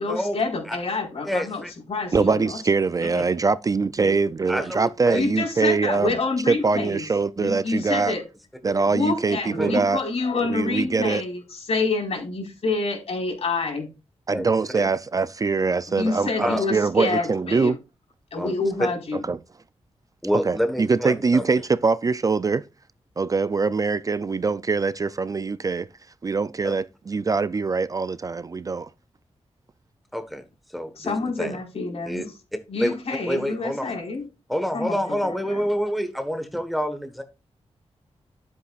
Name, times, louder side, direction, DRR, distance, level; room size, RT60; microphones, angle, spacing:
voice 1, 0.0-1.6 1.9-2.6 5.1-7.0 7.4-8.2 8.9-13.9 15.9-17.7 18.3-19.2 31.0-32.2 32.7-34.3 34.7-35.6, left 3 dB, 65° left, 4.5 m, -27 dB
voice 2, 1.2-1.7 3.0-3.2 4.5-5.2 9.6-9.7 14.3-14.5 14.8-14.9 16.4-16.6 18.3-18.5 20.2-21.4 26.6-26.7 30.1-30.4 30.7-31.6 32.1-32.3 32.8-33.0 33.3-33.9 34.5-37.2, equal, ahead, 1.3 m, -27 dB
voice 3, 2.1-6.1 6.5-8.1 8.6-10.0 10.5-11.2 14.3-17.8 19.1-19.4 20.4-22.7 23.2-25.9 26.2-28.9, right 4 dB, 30° right, 0.3 m, -23 dB
13.0 x 8.1 x 2.4 m
wide cardioid pair, 130°, 11 cm